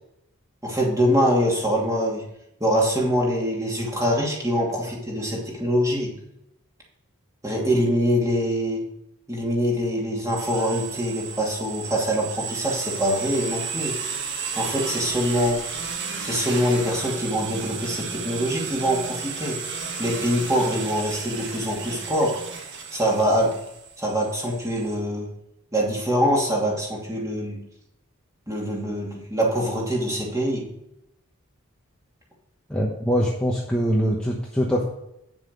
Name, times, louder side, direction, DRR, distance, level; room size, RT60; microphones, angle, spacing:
voice 1, 0.6-2.2 2.6-6.1 7.4-8.8 9.3-13.9 14.5-15.6 16.2-19.6 20.0-22.4 22.9-23.5 24.0-25.3 25.7-27.6 28.5-30.7, equal, 15° right, -3 dB, 2.6 m, -24 dB
sound 1, 10.3-24.9, right 5 dB, 55° right, 1.5 m, -33 dB
voice 2, 32.7-34.8, equal, 5° left, -3 dB, 1.1 m, -23 dB
9.2 x 7.3 x 5.3 m, 0.82 s
head